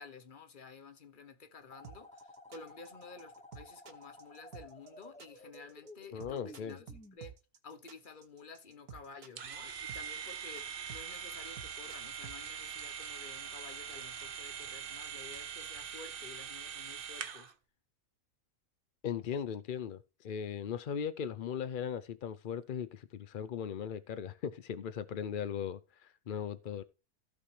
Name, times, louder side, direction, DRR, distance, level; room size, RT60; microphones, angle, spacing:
voice 1, 0.0-7.4 7.6-17.5, left 4 dB, 35° left, 1.0 m, -52 dB
sound 1, 1.7-7.2, left 1 dB, 5° left, 0.6 m, -54 dB
sound 2, 1.8-12.4, right 6 dB, 70° right, 1.6 m, -51 dB
voice 2, 6.1-6.8 19.0-26.8, left 8 dB, 80° left, 0.4 m, -38 dB
sound 3, 9.4-17.5, right 8 dB, 50° right, 0.7 m, -43 dB
15.5 x 5.7 x 3.2 m
omnidirectional pair, 1.7 m